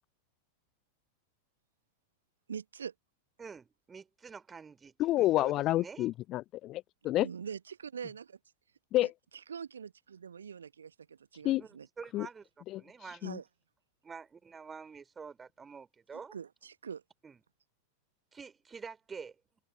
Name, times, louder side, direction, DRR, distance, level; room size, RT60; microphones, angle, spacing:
voice 1, 2.5-2.9 7.2-8.4 9.5-11.9 12.2-12.3 13.2-13.4 16.3-17.0, right 7 dB, 70° right, 1.1 m, -43 dB
voice 2, 3.4-6.1 11.6-12.5 12.7-13.3 14.0-16.4 17.2-17.4 18.3-19.4, right 5 dB, 15° right, 4.0 m, -47 dB
voice 3, 5.0-7.3 8.9-9.1 11.4-11.6 12.1-12.3 12.7-12.8 13.2-13.4, left 15 dB, 35° left, 0.3 m, -29 dB
figure-of-eight pair, 90°, 0 cm